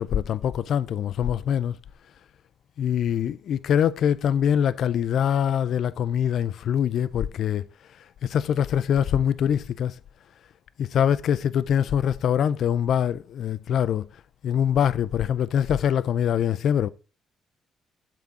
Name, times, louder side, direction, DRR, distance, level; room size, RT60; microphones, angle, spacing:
voice 1, 0.0-1.8 2.8-7.6 8.2-9.9 10.8-14.1 14.4-16.9, left 9 dB, 70° left, 0.4 m, -24 dB
7.5 x 3.7 x 4.1 m
cardioid pair, 90°, 0 cm